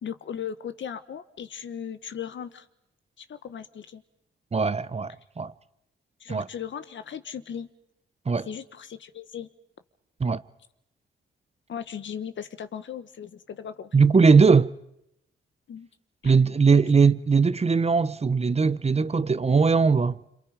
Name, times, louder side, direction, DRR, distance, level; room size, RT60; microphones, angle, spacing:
voice 1, 0.0-2.7 3.2-4.0 6.2-7.7 8.5-9.5 11.7-14.0 15.7-15.9 16.2-16.3 16.7-16.8, left 8 dB, 65° left, 1.3 m, -37 dB
voice 2, 4.5-5.5 6.3-6.5 8.3-8.5 10.2-10.4 13.9-14.7 16.2-20.2, right 5 dB, 30° right, 0.8 m, -20 dB
27.5 x 26.5 x 5.2 m
cardioid pair, 65°, 21 cm